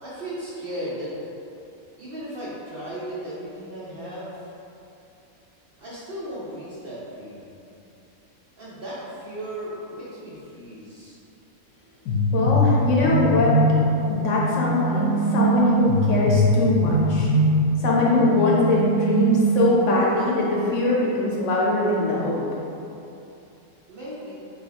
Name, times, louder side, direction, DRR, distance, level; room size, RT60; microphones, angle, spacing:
voice 1, 0.0-1.2 2.0-4.5 5.8-7.5 8.6-11.2 11.8-11.9 23.9-24.3, right 1 dB, 50° right, -8 dB, 0.7 m, -36 dB
sound 1, 12.1-19.7, right 1 dB, 85° left, 1.1 m, -22 dB
voice 2, 12.3-13.6 14.1-17.3 17.8-22.4, left 2 dB, 65° left, -4 dB, 0.9 m, -22 dB
3.4 x 2.8 x 3.9 m, 2.8 s
omnidirectional pair, 1.5 m